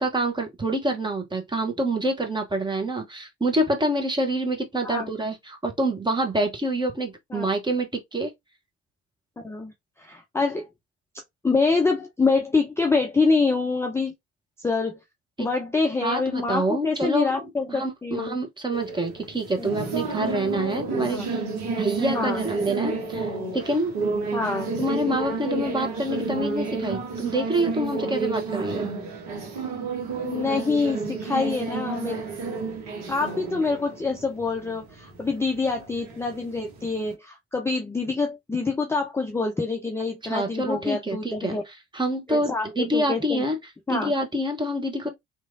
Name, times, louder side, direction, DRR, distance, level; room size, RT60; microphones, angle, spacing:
voice 1, 0.0-8.3 15.4-15.5 16.0-17.4 17.7-21.4 21.8-23.9 24.8-28.9 40.2-43.6 43.9-45.1, right 1 dB, 15° right, 0.9 m, -27 dB
voice 2, 10.0-10.7 11.4-14.1 14.6-15.0 15.4-18.4 19.6-19.7 21.1-21.3 22.1-22.4 24.3-24.9 30.2-32.2 33.1-41.6 42.3-43.4 43.9-44.1, left 4 dB, 10° left, 0.5 m, -26 dB
sound 1, 18.7-37.1, right 4 dB, 70° right, 1.0 m, -31 dB
3.0 x 2.5 x 2.5 m
figure-of-eight pair, 55°, 32 cm